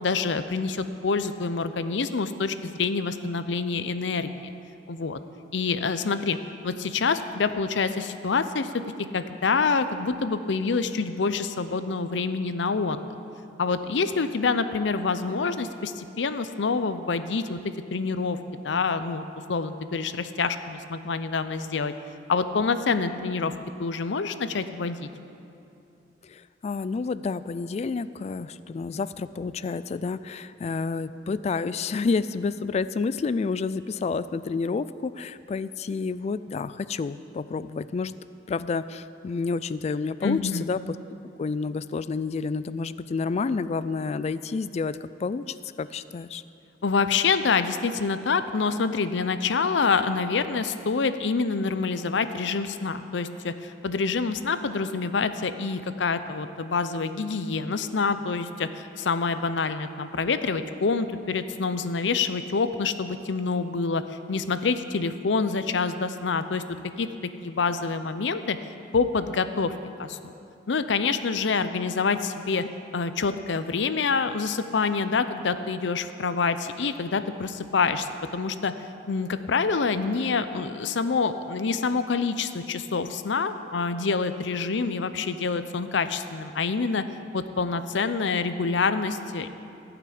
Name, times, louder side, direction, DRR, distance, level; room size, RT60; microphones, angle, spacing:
voice 1, 0.0-4.5 4.9-5.2 5.5-6.4 6.6-8.8 9.1-13.0 13.6-17.6 17.9-21.9 22.3-25.1 40.2-40.7 46.8-66.6 67.0-67.1 67.4-68.6 68.9-70.3 70.7-72.6 72.9-78.7 79.1-87.0 87.3-89.5, left 4 dB, 80° left, 11 dB, 0.6 m, -26 dB
voice 2, 26.2-38.1 38.5-41.0 41.4-46.4, left 4 dB, 35° left, 15 dB, 0.3 m, -29 dB
15.0 x 5.9 x 8.6 m, 2.7 s
head